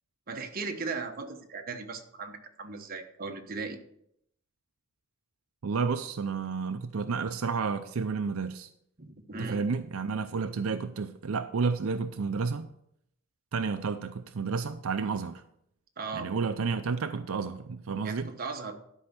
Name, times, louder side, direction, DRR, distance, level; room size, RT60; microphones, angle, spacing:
voice 1, 0.3-3.8 9.0-9.6 16.0-16.3 18.0-18.8, right 4 dB, 45° right, 4 dB, 1.2 m, -37 dB
voice 2, 5.6-8.7 9.4-12.7 13.5-15.4 16.1-18.3, right 5 dB, 80° right, 9 dB, 0.5 m, -31 dB
12.0 x 5.4 x 6.0 m, 0.74 s
head